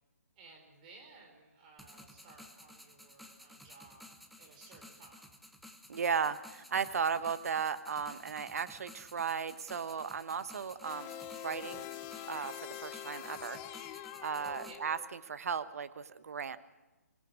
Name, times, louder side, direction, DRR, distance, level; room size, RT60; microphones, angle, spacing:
voice 1, 0.4-5.3 10.5-10.7 14.6-14.8, right 3 dB, 30° right, 3 dB, 4.6 m, -57 dB
sound 1, 1.8-14.8, left 1 dB, ahead, 1.0 m, -55 dB
voice 2, 5.9-11.1 11.4-11.9 12.2-13.6 14.2-16.6, right 6 dB, 60° right, 13 dB, 1.2 m, -35 dB
sound 2, 10.8-15.2, left 12 dB, 25° left, 1.1 m, -45 dB
26.5 x 17.5 x 6.2 m, 1.1 s
hypercardioid pair, 145°, 9 cm